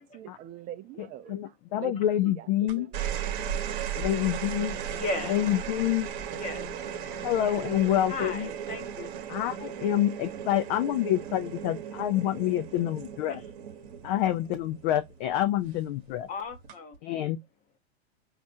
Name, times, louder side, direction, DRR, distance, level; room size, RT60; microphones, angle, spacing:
voice 1, 0.0-3.9, right 12 dB, 25° right, 0.5 m, -45 dB
voice 2, 1.0-2.9 3.9-4.8 5.3-6.1 7.2-8.5 9.3-13.4 14.0-16.3 17.0-17.4, left 12 dB, 45° left, 0.5 m, -27 dB
sound 1, 2.7-15.3 16.5-17.0, right 8 dB, 50° right, 1.1 m, -36 dB
voice 3, 4.9-5.4 6.4-6.6 7.0-7.2 8.1-9.1 13.3-13.4 16.3-17.0, left 3 dB, 25° left, 0.9 m, -36 dB
4.1 x 2.5 x 2.6 m
supercardioid pair, 140°, 32 cm